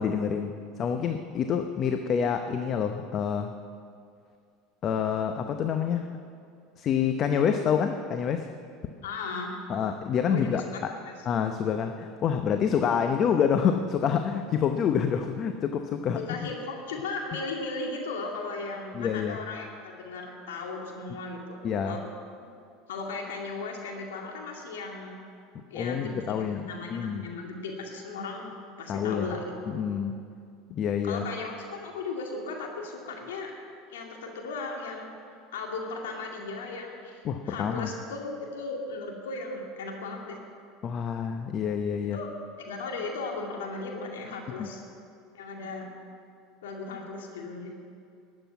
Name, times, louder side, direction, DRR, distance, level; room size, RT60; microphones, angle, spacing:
voice 1, 0.0-3.5 4.8-6.1 6.8-8.5 9.7-10.9 11.3-16.2 18.9-19.4 21.6-22.0 25.7-27.2 28.9-29.3 29.7-30.2 30.7-31.2 37.2-37.9 40.8-42.2 44.6-44.7, left 7 dB, 45° left, 6 dB, 0.8 m, -27 dB
voice 2, 9.0-9.5 10.3-10.4 10.7-11.1 16.1-22.0 22.9-25.2 25.7-28.5 28.8-29.5 31.0-33.5 33.9-35.1 35.5-40.4 42.1-44.8 45.3-45.9 46.6-47.7, left 3 dB, 80° left, 0 dB, 2.2 m, -36 dB
12.5 x 7.8 x 9.4 m, 2.4 s
hypercardioid pair, 85°, 0 cm